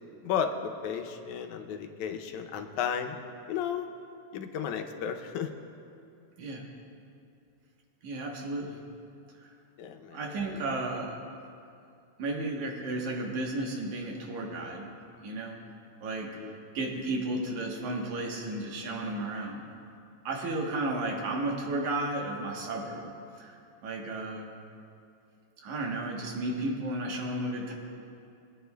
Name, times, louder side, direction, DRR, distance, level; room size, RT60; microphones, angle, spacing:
voice 1, 0.2-3.2 3.5-3.9 4.3-5.5 9.8-10.7 16.3-16.6, left 8 dB, 85° left, 5 dB, 2.1 m, -34 dB
voice 2, 8.0-8.8 9.4-9.5 10.1-11.2 12.2-15.0 15.2-15.6 16.0-16.4 16.7-19.6 20.3-23.1 23.4-23.6 23.8-24.5 25.6-27.7, right 2 dB, 80° right, 0 dB, 2.7 m, -33 dB
23.0 x 9.4 x 2.3 m, 2.5 s
omnidirectional pair, 3.3 m